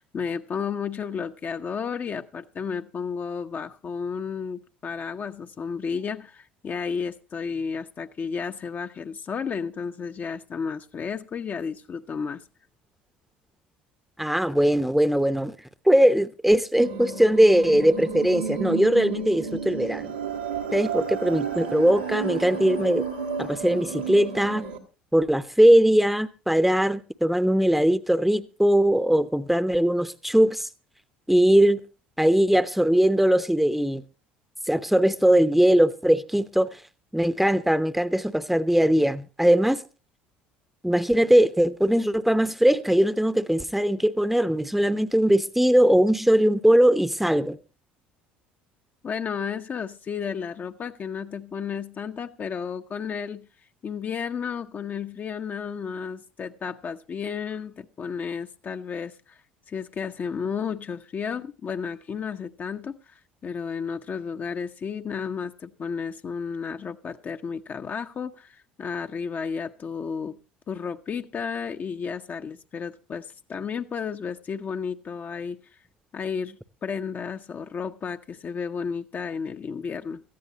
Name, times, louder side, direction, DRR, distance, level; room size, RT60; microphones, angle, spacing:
voice 1, 0.0-12.4 49.0-53.5 53.8-59.4 59.7-70.4 70.7-75.6 76.1-80.2, left 6 dB, 35° left, 0.8 m, -32 dB
voice 2, 14.2-15.5 15.9-20.1 20.7-23.0 23.4-24.7 25.1-30.7 31.3-31.8 32.2-34.0 34.7-36.8 37.1-39.8 40.8-47.6, equal, 5° right, 0.8 m, -20 dB
sound 1, 16.8-24.8, right 5 dB, 85° right, 1.6 m, -32 dB
18.0 x 14.0 x 2.9 m
figure-of-eight pair, 60°, 5 cm